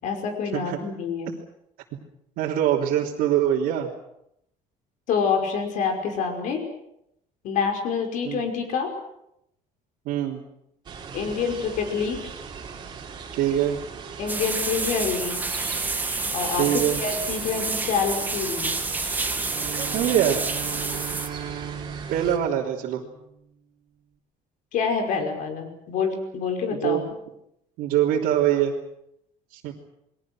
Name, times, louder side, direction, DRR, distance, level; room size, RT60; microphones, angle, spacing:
voice 1, 0.0-1.3 5.1-6.6 7.4-8.9 11.1-12.2 14.2-15.5 16.3-16.7 17.0-18.7 24.7-27.0, left 6 dB, 60° left, 4 dB, 5.5 m, -27 dB
voice 2, 2.4-3.9 8.2-8.4 10.0-10.4 13.3-13.8 16.6-17.0 19.9-20.4 22.1-23.0 26.8-27.0 27.8-28.7 29.5-29.7, right 11 dB, 80° right, -5 dB, 3.4 m, -23 dB
sound 1, 10.9-22.4, right 6 dB, 30° right, 3.7 m, -39 dB
sound 2, 14.3-21.3, right 3 dB, 10° right, 1.6 m, -29 dB
Bowed string instrument, 19.3-23.4, right 9 dB, 55° right, 2.5 m, -38 dB
29.0 x 22.5 x 6.3 m, 0.78 s
cardioid pair, 180°, 15 cm